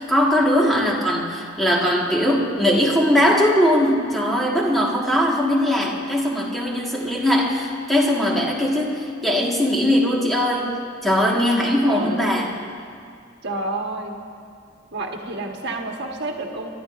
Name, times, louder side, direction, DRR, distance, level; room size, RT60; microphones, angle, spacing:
voice 1, 0.0-10.7 11.0-12.5, equal, ahead, -3 dB, 1.6 m, -20 dB
voice 2, 11.8-12.4 13.4-14.2 14.9-16.7, right 2 dB, 60° right, 1 dB, 1.4 m, -29 dB
27.5 x 12.0 x 2.5 m, 2.3 s
head